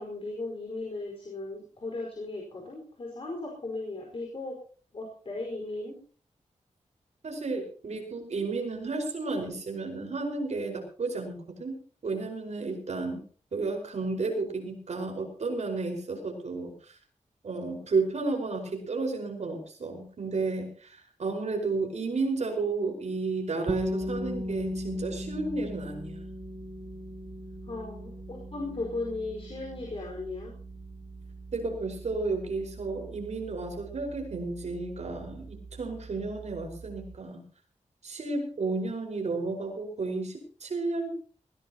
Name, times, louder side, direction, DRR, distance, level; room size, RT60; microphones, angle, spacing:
voice 1, 0.0-4.5 4.9-6.0 27.7-30.5, left 2 dB, 45° left, -1 dB, 5.0 m, -36 dB
voice 2, 7.2-11.8 12.0-13.2 13.5-16.7 17.4-26.2 31.5-37.4 38.0-41.2, right 3 dB, 60° right, 2 dB, 5.1 m, -32 dB
sound 1, 23.7-35.5, equal, 35° right, 2.1 m, -39 dB
20.0 x 18.0 x 3.0 m, 0.42 s
wide cardioid pair, 140°, 13 cm